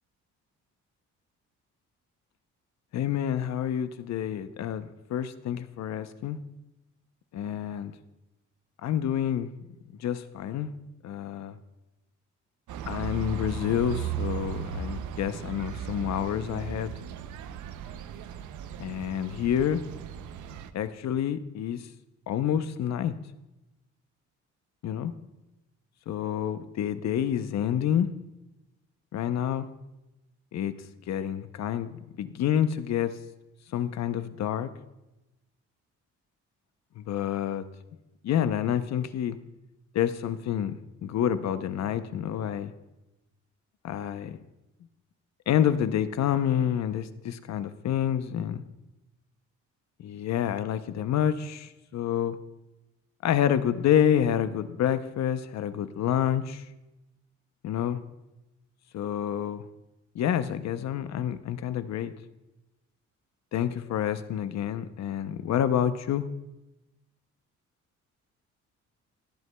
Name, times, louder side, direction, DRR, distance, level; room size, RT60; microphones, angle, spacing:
voice 1, 2.9-4.8 5.1-6.4 7.3-7.9 8.8-9.5 10.0-10.7 11.0-11.6 12.9-16.9 18.8-19.8 20.7-21.8 22.3-23.1 24.8-25.1 26.1-28.1 29.1-29.7 30.5-30.7 31.1-33.2 33.7-34.7 37.0-37.6 38.2-39.4 39.9-42.7 43.8-44.4 45.5-48.6 50.0-52.4 53.2-56.6 57.6-58.0 58.9-59.6 60.1-62.1 63.5-66.2, left 9 dB, 60° left, 12 dB, 0.7 m, -28 dB
sound 1, 12.7-20.7, right 7 dB, 80° right, 0.6 m, -36 dB
20.5 x 8.0 x 2.2 m, 0.97 s
cardioid pair, 90°, 30 cm